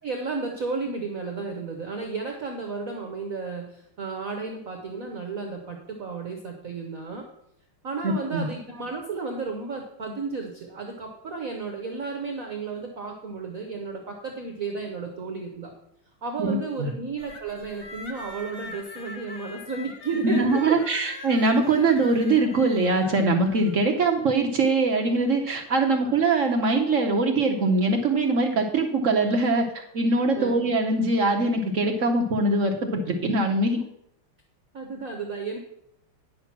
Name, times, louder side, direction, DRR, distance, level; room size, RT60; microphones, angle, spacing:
voice 1, 0.0-7.2 7.8-15.7 16.2-21.1 21.8-21.9 25.9-26.0 30.3-30.5 34.7-35.6, right 4 dB, 50° right, 3 dB, 1.1 m, -33 dB
voice 2, 8.0-8.5 16.4-16.9 20.2-33.8, right 2 dB, 70° right, 2 dB, 0.7 m, -22 dB
sound 1, 17.2-23.8, left 2 dB, 40° left, 0.9 m, -42 dB
9.4 x 5.9 x 5.9 m, 0.76 s
omnidirectional pair, 2.4 m